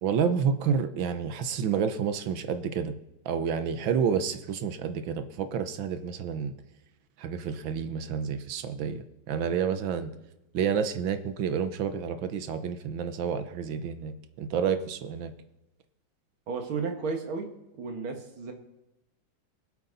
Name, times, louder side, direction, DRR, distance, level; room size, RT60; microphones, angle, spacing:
voice 1, 0.0-2.9 3.2-6.5 7.2-10.1 10.5-15.3, right 7 dB, 75° right, 10 dB, 1.6 m, -29 dB
voice 2, 16.5-17.5 17.7-18.5, right 4 dB, 90° right, 4 dB, 2.5 m, -33 dB
23.0 x 8.1 x 4.0 m, 0.94 s
omnidirectional pair, 2.2 m